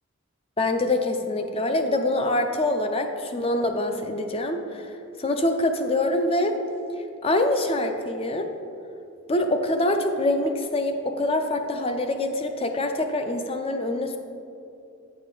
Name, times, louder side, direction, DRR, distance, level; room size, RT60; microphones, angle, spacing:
voice 1, 0.6-4.9 5.2-6.6 7.0-8.5 9.3-14.2, left 1 dB, 25° left, 6 dB, 0.4 m, -25 dB
8.8 x 5.0 x 3.8 m, 2.6 s
head